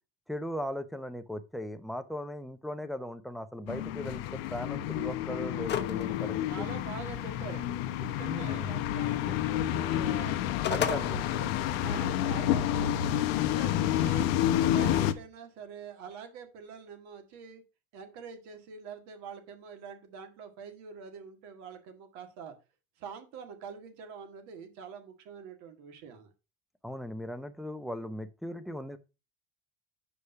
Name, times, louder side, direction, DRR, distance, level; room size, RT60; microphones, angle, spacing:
voice 1, 0.3-6.4 8.2-8.8 10.7-11.2 26.8-29.0, equal, ahead, 8 dB, 0.7 m, -38 dB
sound 1, 3.7-15.1, left 11 dB, 85° left, 0.8 m, -29 dB
sound 2, 5.7-6.0 6.4-6.5 10.2-11.0, left 9 dB, 35° left, 0.9 m, -30 dB
voice 2, 6.5-10.4 10.8-13.1 13.4-14.4 14.7-17.6 17.9-22.5 23.0-26.3, right 6 dB, 70° right, 6 dB, 1.8 m, -45 dB
5.4 x 5.0 x 5.5 m, 0.29 s
supercardioid pair, 115°, 29 cm